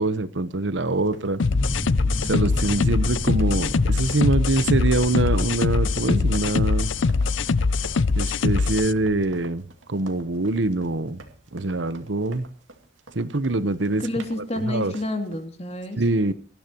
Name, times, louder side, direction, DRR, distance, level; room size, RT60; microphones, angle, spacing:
voice 1, 0.0-1.4 2.3-6.9 8.1-9.6 9.9-11.2 11.5-12.5 13.1-14.1 14.6-14.9 16.0-16.3, right 2 dB, 70° right, 14 dB, 1.0 m, -24 dB
sound 1, 0.9-15.4, right 2 dB, 85° right, 2.5 m, -48 dB
sound 2, 1.4-8.9, left 4 dB, 75° left, 0.6 m, -22 dB
sound 3, 1.5-9.3, equal, 5° right, 2.5 m, -34 dB
voice 2, 14.0-16.0, left 1 dB, 35° left, 6 dB, 2.8 m, -29 dB
20.5 x 14.5 x 3.0 m, 0.40 s
head